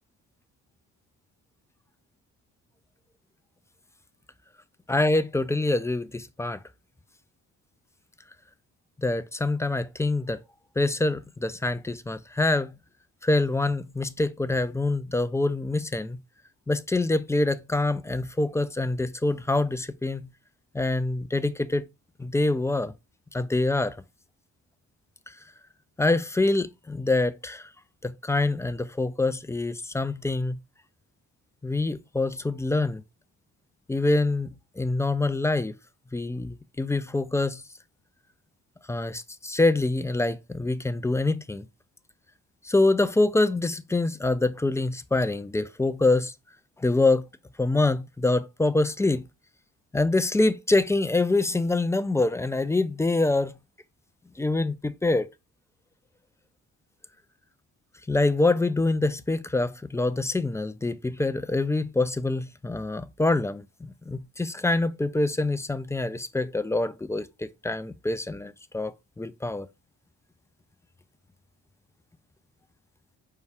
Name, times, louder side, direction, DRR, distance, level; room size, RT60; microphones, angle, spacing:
voice 1, 4.9-6.6 9.0-10.4 10.8-12.8 13.2-16.2 16.7-20.3 20.7-21.8 22.2-22.9 23.3-24.0 25.3-25.4 26.0-27.7 28.0-30.6 31.6-33.0 33.9-35.7 36.1-37.6 38.9-41.7 42.6-46.3 46.8-47.3 47.6-49.3 49.9-53.6 54.4-55.3 58.1-69.7, left 2 dB, 10° left, 0.3 m, -25 dB
5.5 x 2.3 x 3.4 m
cardioid pair, 90°, 30 cm